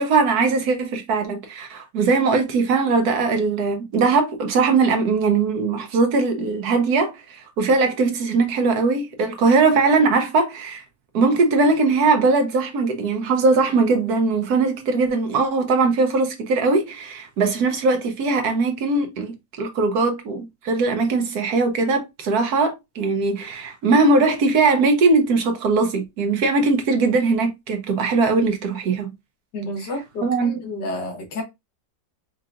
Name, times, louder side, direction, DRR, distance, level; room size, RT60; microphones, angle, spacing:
voice 1, 0.0-10.8 11.1-29.1 30.2-30.5, right 3 dB, 65° right, 1.3 m, -20 dB
voice 2, 29.5-31.4, left 1 dB, 75° left, 1.7 m, -30 dB
4.8 x 3.0 x 2.4 m
omnidirectional pair, 1.9 m